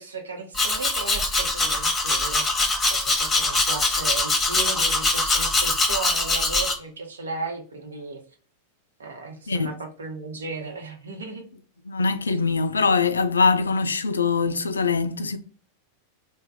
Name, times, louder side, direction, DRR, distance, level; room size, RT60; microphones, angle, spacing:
voice 1, 0.0-2.4 3.2-8.2 9.0-11.5 12.3-12.4, right 3 dB, 70° right, 0.8 m, -35 dB
Domestic sounds home sounds, 0.5-6.7, left 2 dB, 15° left, 0.9 m, -23 dB
voice 2, 11.9-15.4, left 4 dB, 75° left, 0.3 m, -22 dB
3.4 x 2.1 x 3.5 m
figure-of-eight pair, 90°, 0 cm